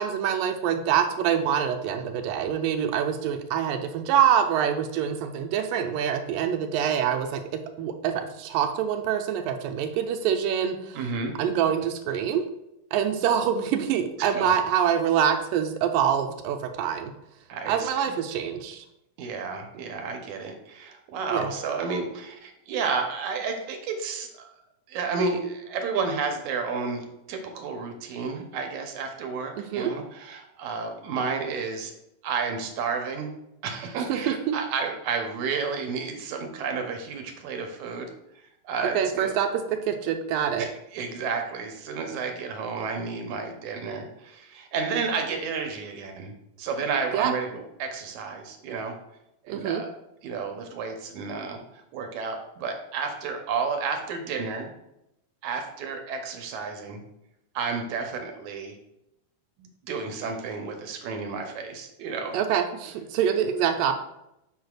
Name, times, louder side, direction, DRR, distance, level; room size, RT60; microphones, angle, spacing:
voice 1, 0.0-7.4 7.8-11.0 11.4-12.5 12.9-17.1 17.7-18.8 21.3-21.5 29.6-29.9 34.1-34.6 39.0-40.7 47.1-47.3 49.5-49.8 62.3-63.9, right 8 dB, 85° right, 6 dB, 2.3 m, -25 dB
voice 2, 11.0-11.3 14.2-14.5 17.5-18.1 19.2-24.5 24.9-31.9 32.2-33.3 33.6-38.1 38.6-39.3 40.6-46.3 46.6-48.9 49.5-49.9 50.2-54.7 55.4-57.0 57.6-58.7 59.6-62.4, right 5 dB, 70° right, 4 dB, 2.0 m, -31 dB
7.8 x 6.3 x 2.4 m, 0.85 s
omnidirectional pair, 3.9 m